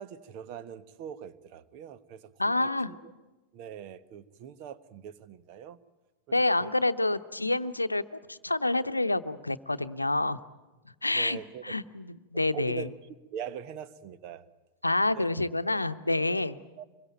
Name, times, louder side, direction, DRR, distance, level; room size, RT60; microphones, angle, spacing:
voice 1, 0.0-3.1 3.5-5.8 6.3-6.7 11.1-11.6 12.5-12.9 13.3-14.5 15.1-15.3 16.8-16.9, right 8 dB, 45° right, 13 dB, 1.2 m, -42 dB
voice 2, 2.4-2.9 6.3-10.4 11.0-12.9 14.8-16.6, left 2 dB, 85° left, 12 dB, 0.8 m, -28 dB
26.0 x 22.5 x 9.2 m, 1.2 s
figure-of-eight pair, 90°, 0 cm